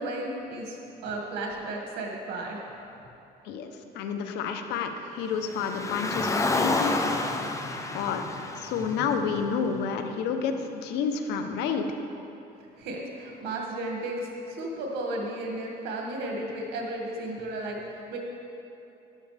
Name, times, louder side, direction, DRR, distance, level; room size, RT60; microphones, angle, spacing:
voice 1, 0.0-2.6 12.8-18.2, right 2 dB, 85° right, -1 dB, 2.1 m, -34 dB
voice 2, 3.4-7.2 7.9-8.2 8.6-11.9, left 6 dB, 90° left, 6 dB, 0.9 m, -30 dB
Car, 5.4-9.8, left 2 dB, 20° left, 0.8 m, -29 dB
12.0 x 11.0 x 3.4 m, 2.8 s
cardioid pair, 110°, 17 cm